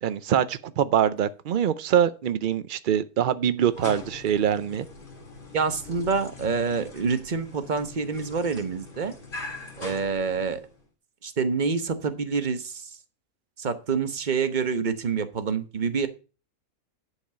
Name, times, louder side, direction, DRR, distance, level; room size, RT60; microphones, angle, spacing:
voice 1, 0.0-4.9, right 9 dB, 80° right, 0.4 m, -24 dB
sound 1, 3.6-10.8, left 2 dB, 35° left, 2.3 m, -42 dB
voice 2, 5.5-9.1 9.8-10.6 11.2-12.9 13.6-16.1, right 5 dB, 35° right, 1.0 m, -27 dB
10.5 x 4.8 x 6.7 m
omnidirectional pair, 1.5 m